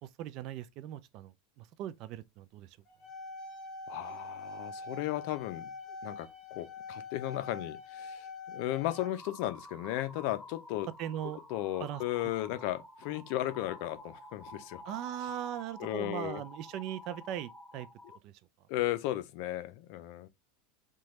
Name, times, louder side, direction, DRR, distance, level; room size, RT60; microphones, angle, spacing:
voice 1, 0.0-2.8 11.0-11.4 11.8-12.0 14.8-17.9 18.2-18.3, right 11 dB, 50° right, 0.4 m, -39 dB
sound 1, 2.9-9.1, left 3 dB, 35° left, 1.0 m, -44 dB
voice 2, 3.9-5.7 6.0-10.9 11.5-14.8 15.8-16.4 18.7-20.3, left 15 dB, 65° left, 0.4 m, -35 dB
sound 2, 8.9-18.2, left 1 dB, 5° left, 0.5 m, -50 dB
3.0 x 2.2 x 2.9 m
supercardioid pair, 120°, 0 cm